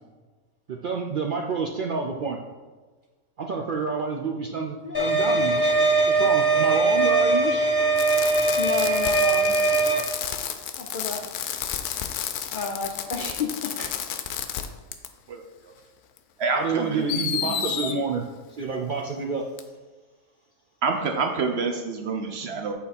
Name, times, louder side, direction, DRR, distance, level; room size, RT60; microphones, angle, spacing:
voice 1, 0.7-2.4 3.4-7.7 16.5-18.2 18.6-19.5, right 4 dB, 90° right, 0 dB, 0.4 m, -28 dB
sound 1, 4.9-10.0, right 3 dB, 20° left, 0.9 m, -21 dB
Fireworks, 8.0-14.7 14.9-15.1 16.2-16.3 17.1-17.9 19.6-19.7, left 9 dB, 85° left, 1.1 m, -31 dB
voice 2, 8.6-9.5 10.8-11.2 12.5-13.5 13.8-13.9, left 4 dB, 65° left, 1 dB, 0.5 m, -31 dB
voice 3, 15.3-15.8 16.4-18.0 20.8-22.7, right 4 dB, 60° right, 4 dB, 0.7 m, -28 dB
7.6 x 4.0 x 4.1 m, 1.3 s
omnidirectional pair, 1.6 m